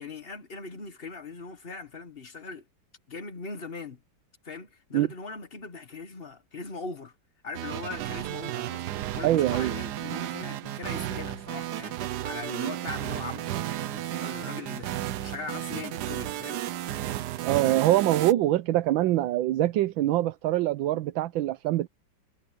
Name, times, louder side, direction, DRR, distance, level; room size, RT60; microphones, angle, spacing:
voice 1, 0.0-2.6 3.1-4.0 4.4-7.1 7.4-16.6, left 4 dB, 35° left, 1.4 m, -40 dB
sound 1, 7.5-18.3, right 13 dB, 65° right, 1.2 m, -33 dB
voice 2, 9.2-9.7 12.6-12.7 17.4-21.9, right 14 dB, 80° right, 1.4 m, -24 dB
omnidirectional pair, 2.1 m